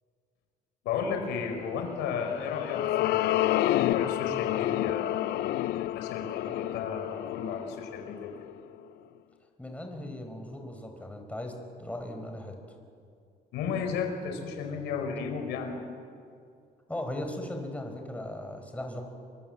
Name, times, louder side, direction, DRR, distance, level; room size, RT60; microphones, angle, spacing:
voice 1, 0.8-8.3 13.5-15.8, left 6 dB, 90° left, 4 dB, 4.7 m, -34 dB
sound 1, 2.1-8.6, left 15 dB, 75° left, 0.6 m, -29 dB
voice 2, 9.6-12.6 16.9-19.0, left 1 dB, 10° left, 4 dB, 4.9 m, -38 dB
28.0 x 24.5 x 8.0 m, 2.3 s
cardioid pair, 110°, 17 cm